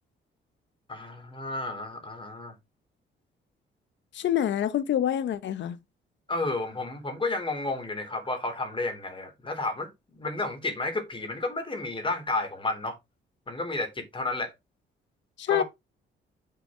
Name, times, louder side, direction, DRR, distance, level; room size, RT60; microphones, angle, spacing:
voice 1, 0.9-2.5 6.3-12.9 13.5-14.5 15.5-15.6, left 2 dB, 25° left, 3.6 m, -31 dB
voice 2, 4.1-5.8 15.4-15.6, left 11 dB, 65° left, 0.9 m, -26 dB
7.3 x 6.9 x 3.8 m
cardioid pair, 90°, 20 cm